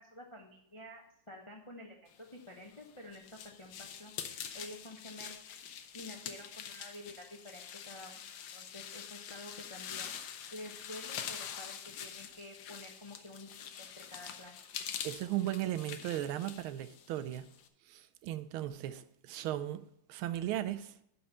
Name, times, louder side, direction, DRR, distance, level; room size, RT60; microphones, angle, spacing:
voice 1, 0.0-4.1 4.5-5.4 5.9-10.1 10.5-14.6, left 1 dB, 40° left, 0.4 m, -50 dB
sound 1, 2.5-17.7, left 8 dB, 80° left, 1.6 m, -45 dB
voice 2, 15.0-17.5 17.9-19.8 20.1-20.9, right 13 dB, 80° right, 1.5 m, -36 dB
11.0 x 4.4 x 5.5 m
omnidirectional pair, 2.3 m